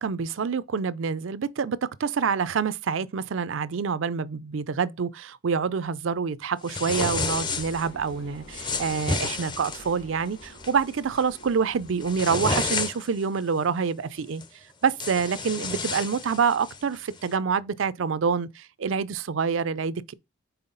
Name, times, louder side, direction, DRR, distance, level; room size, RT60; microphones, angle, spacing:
voice 1, 0.0-14.4 14.8-20.1, right 6 dB, 65° right, 0.4 m, -27 dB
sound 1, 6.6-7.9 8.5-9.9 10.4-10.7 11.1-11.4 11.8-13.2 14.4-14.5 14.9-16.8, left 3 dB, 20° left, 0.5 m, -30 dB
sound 2, 7.0-12.2, equal, 55° left, 1.7 m, -47 dB
5.6 x 4.3 x 3.9 m
head